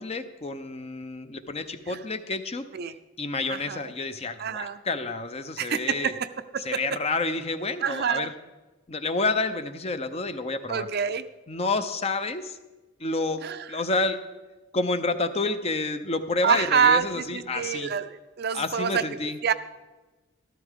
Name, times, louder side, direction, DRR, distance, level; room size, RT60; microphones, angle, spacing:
voice 1, 0.0-2.7 3.2-6.1 6.6-8.3 8.9-10.9 11.5-12.6 13.0-14.2 14.7-17.9 18.5-19.4, left 3 dB, 30° left, 10 dB, 0.6 m, -29 dB
voice 2, 3.5-3.8 4.4-4.8 5.6-6.1 7.8-8.3 10.7-11.2 13.4-13.6 16.4-19.1 19.4-19.5, right 7 dB, 50° right, 11 dB, 0.5 m, -26 dB
13.5 x 13.5 x 3.6 m, 1.2 s
head